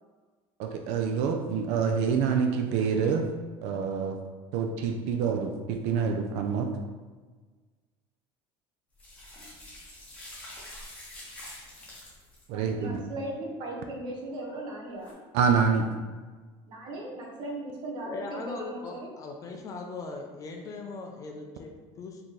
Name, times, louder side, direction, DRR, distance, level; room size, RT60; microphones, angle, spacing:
voice 1, 0.6-3.3 3.6-4.2 4.5-6.7 12.5-13.0 15.3-15.9, right 6 dB, 60° right, 4 dB, 0.4 m, -26 dB
sound 1, 9.0-12.4 15.0-15.1, left 1 dB, 10° left, 0.8 m, -46 dB
voice 2, 12.5-15.2 16.7-19.1, right 1 dB, 35° right, -1 dB, 0.8 m, -38 dB
voice 3, 18.0-22.2, left 3 dB, 25° left, 2 dB, 0.4 m, -39 dB
4.2 x 2.8 x 3.1 m, 1.4 s
cardioid pair, 165°, 12 cm